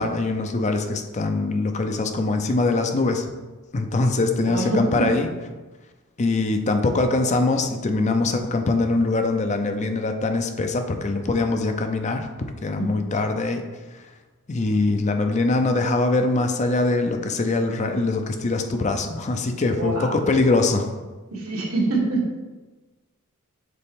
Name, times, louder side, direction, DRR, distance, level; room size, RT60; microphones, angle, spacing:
voice 1, 0.0-3.2 3.7-5.3 6.2-13.6 14.5-20.9, left 3 dB, 35° left, 6 dB, 0.5 m, -23 dB
voice 2, 4.5-5.1 19.8-20.1 21.3-22.4, right 2 dB, 85° right, -3 dB, 1.7 m, -25 dB
6.7 x 4.0 x 3.7 m, 1.2 s
head